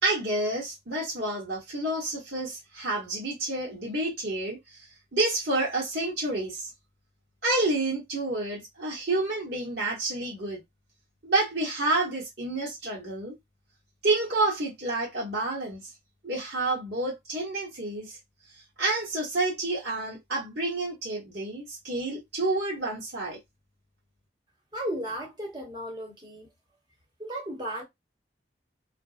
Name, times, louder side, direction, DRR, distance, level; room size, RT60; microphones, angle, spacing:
voice 1, 0.0-6.7 7.4-10.6 11.2-13.3 14.0-15.9 16.2-18.2 18.8-23.4, right 2 dB, 70° right, 1.1 m, -29 dB
voice 2, 24.7-26.5 27.2-27.8, right 1 dB, 25° right, 1.0 m, -35 dB
2.5 x 2.2 x 2.4 m
head